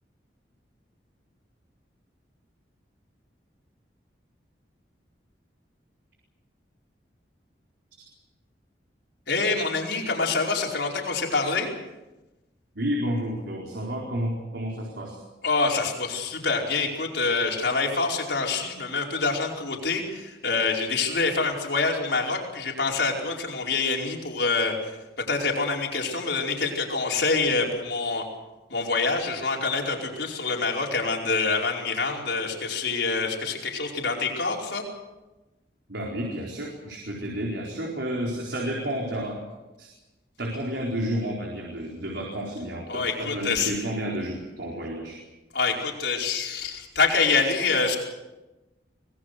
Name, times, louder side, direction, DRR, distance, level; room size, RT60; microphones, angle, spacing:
voice 1, 9.3-11.7 15.4-28.3 28.7-34.8 42.9-43.7 45.5-48.0, left 4 dB, 75° left, 0 dB, 5.0 m, -26 dB
voice 2, 12.7-15.2 35.9-39.4 39.8-39.9 40.4-45.2, equal, 75° right, -1 dB, 4.4 m, -31 dB
24.5 x 20.5 x 6.7 m, 1.1 s
head